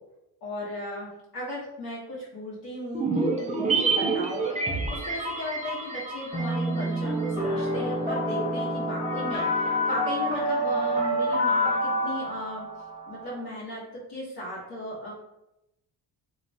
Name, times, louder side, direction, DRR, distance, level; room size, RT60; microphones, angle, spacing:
voice 1, 0.4-12.7 13.1-15.1, left 1 dB, 60° left, -6 dB, 0.9 m, -36 dB
sound 1, 2.9-7.4 7.7-7.8, right 4 dB, 15° right, 0.4 m, -28 dB
sound 2, 6.3-13.3, equal, 15° left, 1.2 m, -27 dB
2.9 x 2.0 x 2.6 m, 0.89 s
cardioid pair, 80°, 44 cm